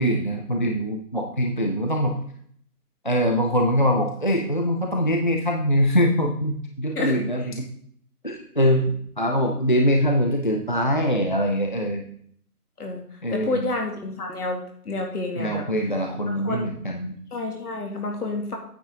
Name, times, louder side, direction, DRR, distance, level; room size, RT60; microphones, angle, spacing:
voice 1, 0.0-2.2 3.0-7.7 8.2-12.0 13.2-13.7 15.4-17.1, equal, 35° left, 2 dB, 0.5 m, -23 dB
voice 2, 13.3-15.6 16.3-16.7 17.3-18.6, left 2 dB, 70° left, 2 dB, 2.5 m, -29 dB
9.1 x 7.2 x 3.7 m, 0.62 s
hypercardioid pair, 170°, 47 cm